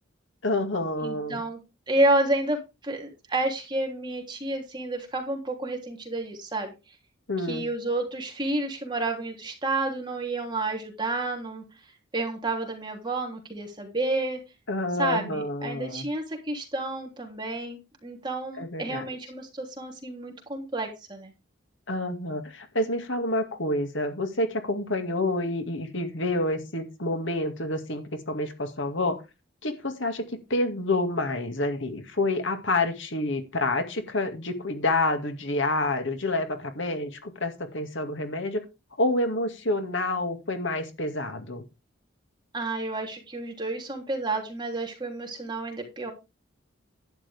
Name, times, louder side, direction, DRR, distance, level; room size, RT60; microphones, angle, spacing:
voice 1, 0.4-1.4 7.3-7.6 14.7-16.1 18.6-19.1 21.9-29.2 29.6-38.6 39.0-41.6, left 2 dB, 70° left, 7 dB, 2.2 m, -28 dB
voice 2, 1.0-1.6 1.9-6.7 7.4-11.6 12.1-14.4 15.0-21.3 42.5-46.1, right 2 dB, 20° right, 2 dB, 3.3 m, -30 dB
11.5 x 10.5 x 3.5 m, 0.26 s
head